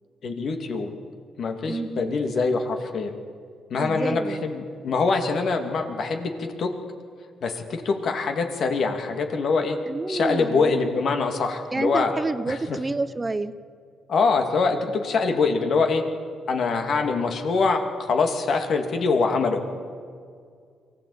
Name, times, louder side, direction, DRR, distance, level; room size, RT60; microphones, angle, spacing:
voice 1, 0.2-0.9 1.4-3.1 3.7-6.7 7.4-9.8 10.1-12.1 12.5-12.8 14.1-16.0 16.5-19.6, left 4 dB, 60° left, 5 dB, 2.6 m, -24 dB
voice 2, 1.7-2.2 3.8-4.4 9.9-10.7 11.7-13.5, right 3 dB, 20° right, 13 dB, 0.7 m, -29 dB
23.5 x 15.5 x 8.8 m, 2.2 s
cardioid pair, 90°, 0 cm